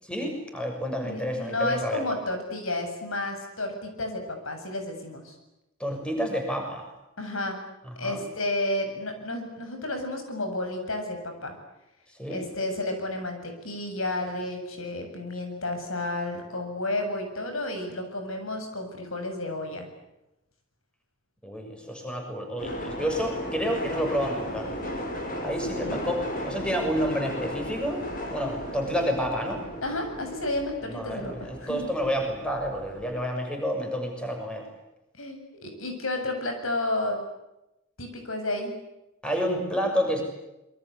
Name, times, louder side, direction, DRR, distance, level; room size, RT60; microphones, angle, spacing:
voice 1, 0.0-2.2 5.8-6.9 8.0-8.2 12.2-12.4 21.4-24.7 25.4-28.0 28.3-29.7 30.9-34.7 39.2-40.2, equal, 5° left, 3 dB, 6.7 m, -29 dB
voice 2, 1.0-5.3 7.2-7.6 8.0-11.5 12.3-19.9 25.8-26.0 29.8-31.9 35.2-37.2 38.0-38.7, left 2 dB, 75° left, 5 dB, 7.8 m, -31 dB
sound 1, 22.6-33.2, equal, 40° left, 6.5 m, -35 dB
27.5 x 24.0 x 8.4 m, 0.92 s
head